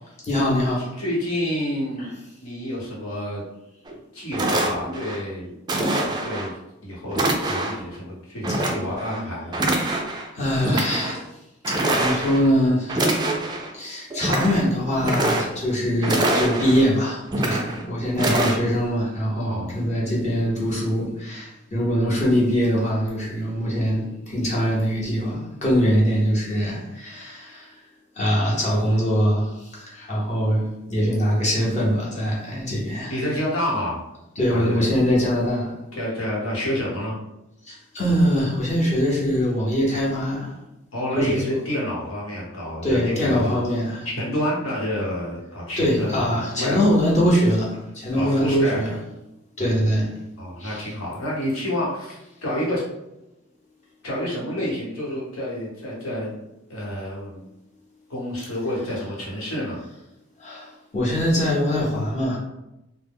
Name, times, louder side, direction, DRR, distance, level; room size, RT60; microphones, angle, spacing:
voice 1, 0.2-0.9 2.0-2.1 10.3-11.4 11.7-13.0 13.7-27.8 28.1-33.1 34.4-35.7 37.6-40.6 41.1-41.4 42.8-44.1 45.8-48.9 49.6-50.1 50.6-50.9 60.4-62.4, equal, 35° left, -5 dB, 0.8 m, -23 dB
voice 2, 1.0-3.4 4.1-5.5 6.2-6.6 6.8-9.6 19.4-19.7 33.1-34.0 34.5-34.8 35.9-37.2 40.9-43.6 44.1-46.8 48.1-48.8 50.4-52.8 54.0-56.4 56.7-57.4 58.1-59.8, left 1 dB, 85° left, -5 dB, 1.1 m, -29 dB
sound 1, 3.9-4.0 4.3-5.2 5.7-6.5 7.1-7.8 8.4-9.2 9.5-10.3 10.6-11.2 11.6-12.5 12.9-13.7 14.1-14.6 15.0-15.7 16.0-16.9 17.3-17.8 18.2-18.6, right 1 dB, 20° right, 0.3 m, -24 dB
2.1 x 2.0 x 3.5 m, 0.89 s
head